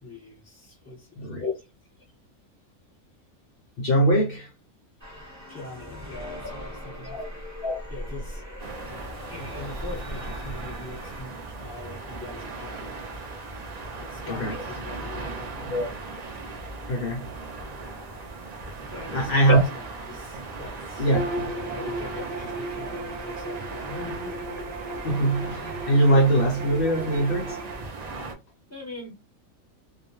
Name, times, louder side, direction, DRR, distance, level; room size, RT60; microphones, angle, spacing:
voice 1, 0.0-1.2 5.5-7.4 7.9-8.4 9.3-13.2 13.9-15.8 18.9-21.1 21.7-24.3 28.7-29.1, left 2 dB, 10° left, 1.0 m, -42 dB
voice 2, 1.2-1.5 3.8-4.5 7.1-7.2 7.6-7.8 14.3-14.6 15.7-15.9 16.9-17.3 19.1-19.6 21.0-21.5 25.0-27.6, right 1 dB, 60° left, 0.6 m, -22 dB
sound 1, 5.0-11.2, equal, 15° right, 0.8 m, -39 dB
sound 2, 8.6-28.3, right 3 dB, 75° right, 0.3 m, -38 dB
Bowed string instrument, 21.1-27.8, right 2 dB, 50° right, 1.0 m, -35 dB
2.3 x 2.1 x 2.9 m
omnidirectional pair, 1.4 m